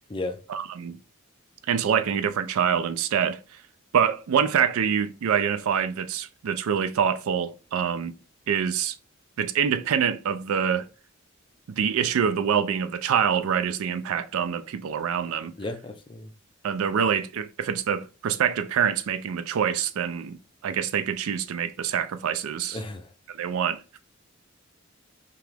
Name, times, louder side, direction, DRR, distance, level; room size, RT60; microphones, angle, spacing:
voice 1, 0.5-1.0 1.7-3.4 3.9-8.1 8.5-9.0 9.4-10.9 11.7-15.5 16.6-20.4 20.6-22.8 23.3-23.8, right 8 dB, 80° right, 0.4 m, -25 dB
voice 2, 15.6-16.3 22.7-23.1, left 2 dB, 20° left, 0.4 m, -33 dB
2.9 x 2.3 x 3.2 m
head